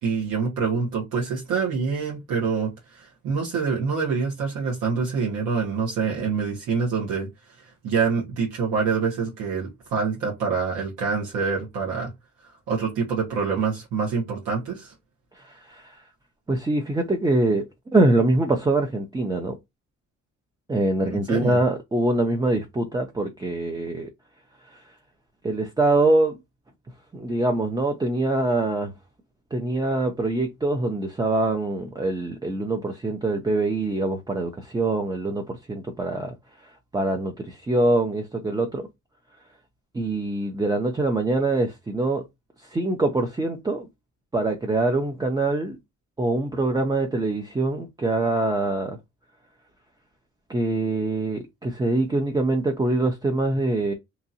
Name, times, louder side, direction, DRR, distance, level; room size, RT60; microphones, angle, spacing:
voice 1, 0.0-7.3 7.6-12.1 12.7-14.9 21.1-21.6, right 5 dB, 90° right, 1.2 m, -26 dB
voice 2, 15.4-16.0 16.5-17.6 17.9-19.5 20.7-24.1 24.7-24.8 25.4-26.4 27.1-28.9 29.5-36.3 36.9-38.9 39.9-42.2 42.6-43.9 44.3-45.8 46.2-49.0 50.5-53.9, right 2 dB, 15° right, 0.5 m, -24 dB
2.9 x 2.5 x 2.7 m
cardioid pair, 90°, 30 cm